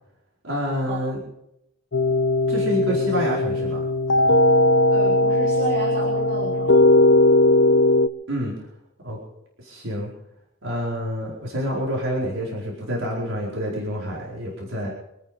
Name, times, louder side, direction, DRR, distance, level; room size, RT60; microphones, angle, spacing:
voice 1, 0.4-1.2 2.5-3.8 8.3-8.5 9.0-9.2 9.6-10.1 10.6-14.9, equal, 80° right, -4 dB, 4.8 m, -27 dB
sound 1, 1.9-8.1, left 1 dB, 75° left, 0.9 m, -18 dB
voice 2, 4.9-6.8, right 2 dB, 45° right, -5 dB, 4.5 m, -32 dB
26.5 x 9.6 x 5.2 m, 0.82 s
head